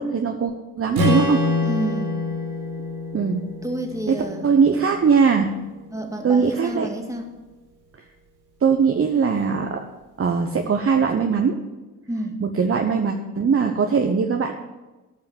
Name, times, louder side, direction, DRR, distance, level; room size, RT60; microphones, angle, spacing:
voice 1, 0.0-1.4 3.1-3.4 4.1-5.5 6.2-6.9 8.6-9.9 10.2-11.6 12.4-14.5, right 5 dB, 30° right, 4 dB, 1.0 m, -20 dB
Strum, 0.9-5.2, left 2 dB, 75° right, 4.5 m, -26 dB
voice 2, 1.6-2.2 3.6-4.4 5.9-7.3 12.1-12.4, right 1 dB, 5° right, 2 dB, 2.3 m, -29 dB
13.5 x 5.6 x 7.7 m, 1.1 s
hypercardioid pair, 55°, 44 cm